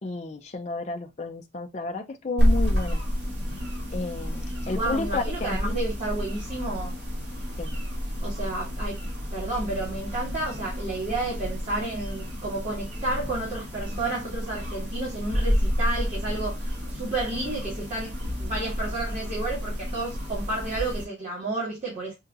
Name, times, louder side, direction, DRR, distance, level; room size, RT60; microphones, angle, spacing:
voice 1, 0.0-3.0 3.9-5.8 7.6-7.8, left 3 dB, 35° left, 0.5 m, -32 dB
sound 1, 2.4-21.0, equal, 60° right, 2.3 m, -30 dB
voice 2, 4.7-7.0 8.2-9.0 9.3-22.1, right 2 dB, 35° right, 1.7 m, -31 dB
5.5 x 2.8 x 2.5 m
head